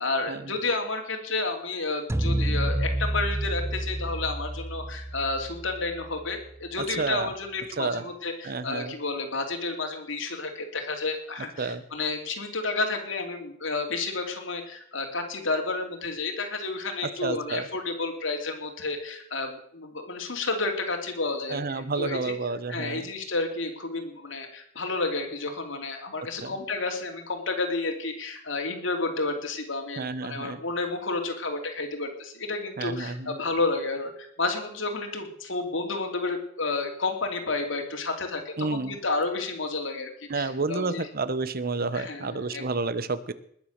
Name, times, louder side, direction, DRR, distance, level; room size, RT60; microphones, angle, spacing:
voice 1, 0.0-22.3 22.7-41.1 41.9-42.7, left 3 dB, 70° left, 3 dB, 2.8 m, -31 dB
sound 1, 2.1-6.4, right 1 dB, 15° right, 0.5 m, -29 dB
voice 2, 6.8-7.3 7.8-8.1 8.4-8.9 11.6-11.8 17.2-17.7 21.5-23.1 26.4-26.5 30.0-30.6 32.8-33.4 38.6-39.0 40.3-43.3, right 3 dB, 50° right, 15 dB, 0.9 m, -30 dB
20.5 x 7.2 x 6.6 m, 0.67 s
head